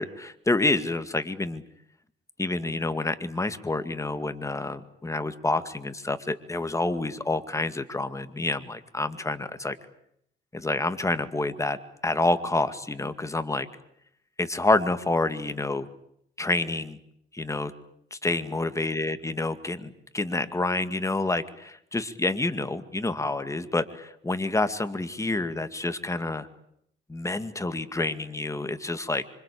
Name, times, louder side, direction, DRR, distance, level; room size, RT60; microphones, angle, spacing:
voice 1, 0.0-1.6 2.4-9.8 10.5-11.8 12.0-13.7 14.4-15.9 16.4-17.0 17.3-17.7 18.1-26.5 27.1-29.2, left 2 dB, 15° left, 10 dB, 2.1 m, -28 dB
27.0 x 25.0 x 8.5 m, 0.73 s
cardioid pair, 90°, 20 cm